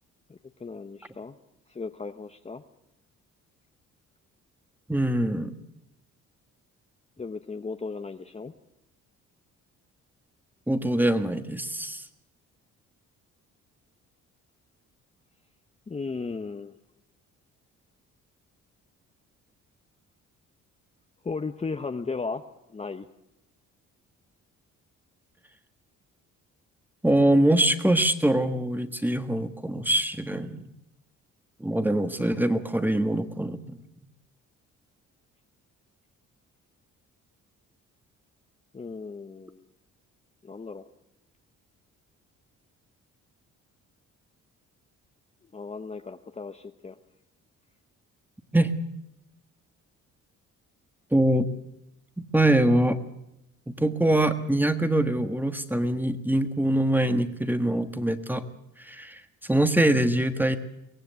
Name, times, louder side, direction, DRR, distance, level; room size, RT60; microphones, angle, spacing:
voice 1, 0.3-1.4 1.7-2.6 7.2-8.5 15.9-16.7 21.2-22.4 22.7-23.1 38.7-39.6 40.4-40.9 45.5-47.0, left 4 dB, 20° left, 7 dB, 0.9 m, -36 dB
voice 2, 4.9-5.5 10.7-12.0 27.0-30.6 31.6-33.8 48.5-48.7 51.1-51.5 52.2-53.0 53.7-58.5 58.8-59.2 59.5-60.6, right 1 dB, 5° right, 9 dB, 1.5 m, -23 dB
23.5 x 17.0 x 8.1 m, 0.87 s
cardioid pair, 95°, 31 cm